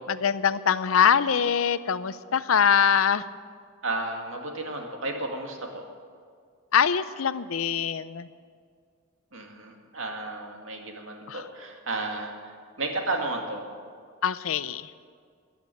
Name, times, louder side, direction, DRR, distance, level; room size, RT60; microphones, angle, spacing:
voice 1, 0.1-3.2 6.7-8.3 11.3-11.4 14.2-14.9, left 7 dB, 85° left, 15 dB, 0.6 m, -23 dB
voice 2, 3.8-5.8 9.3-13.8, right 2 dB, 70° right, 2 dB, 2.2 m, -33 dB
14.5 x 10.5 x 9.2 m, 2.1 s
head